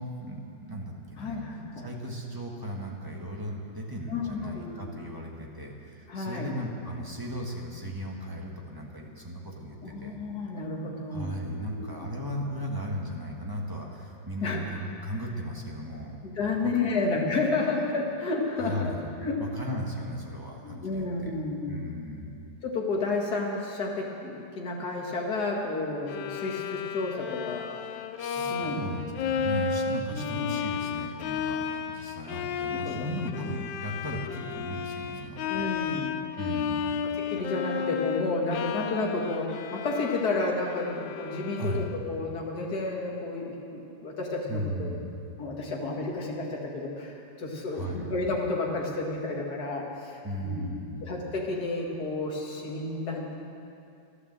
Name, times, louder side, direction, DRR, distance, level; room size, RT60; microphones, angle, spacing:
voice 1, 0.0-1.4 1.8-10.1 11.1-16.2 16.6-16.7 17.0-17.1 18.6-21.3 21.7-22.4 28.2-35.6 36.3-37.0 41.6-41.9 44.5-45.1 47.7-48.1 50.2-51.0, equal, 10° right, -1 dB, 1.5 m, -36 dB
voice 2, 1.2-1.9 4.1-4.9 6.1-6.5 9.8-11.3 11.7-12.1 14.4-14.6 16.2-18.9 19.2-19.4 20.6-21.7 22.6-27.6 28.5-28.8 30.1-30.6 32.3-33.1 35.5-36.2 37.3-44.9 45.4-50.7 51.0-53.3, left 3 dB, 55° left, -1 dB, 2.4 m, -31 dB
Bowed string instrument, 26.1-42.2, left 6 dB, 75° left, 1.3 m, -33 dB
12.5 x 12.0 x 7.6 m, 2.6 s
omnidirectional pair, 2.1 m